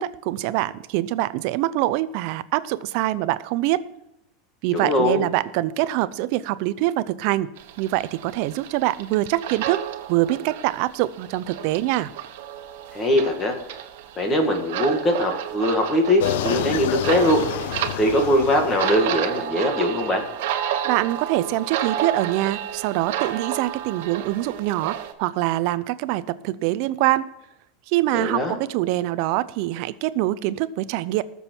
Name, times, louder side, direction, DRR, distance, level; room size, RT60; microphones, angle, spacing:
voice 1, 0.0-3.8 4.6-7.5 7.8-9.8 10.1-12.1 20.8-27.3 27.9-31.2, right 16 dB, 50° right, 16 dB, 0.6 m, -24 dB
voice 2, 4.7-5.2 12.9-13.6 14.2-17.7 18.0-20.2 28.1-28.6, left 1 dB, 20° left, 4 dB, 1.7 m, -21 dB
sound 1, 7.6-25.1, right 10 dB, 70° right, 1.3 m, -31 dB
sound 2, 16.2-19.3, left 13 dB, 75° left, 0.5 m, -29 dB
19.0 x 7.1 x 4.5 m, 0.85 s
supercardioid pair, 170°, 0 cm